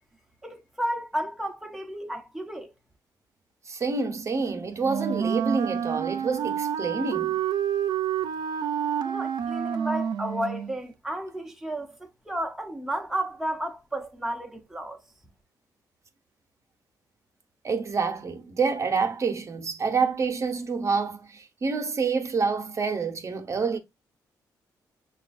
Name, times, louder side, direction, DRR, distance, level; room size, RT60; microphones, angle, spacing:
voice 1, 0.4-2.7 9.0-15.0, right 1 dB, 5° right, 0.7 m, -32 dB
voice 2, 3.7-7.4 17.6-23.8, right 5 dB, 45° right, 0.7 m, -27 dB
Wind instrument woodwind instrument, 4.8-10.7, right 8 dB, 80° right, 0.5 m, -28 dB
6.9 x 2.3 x 2.5 m
cardioid pair, 85°, 7 cm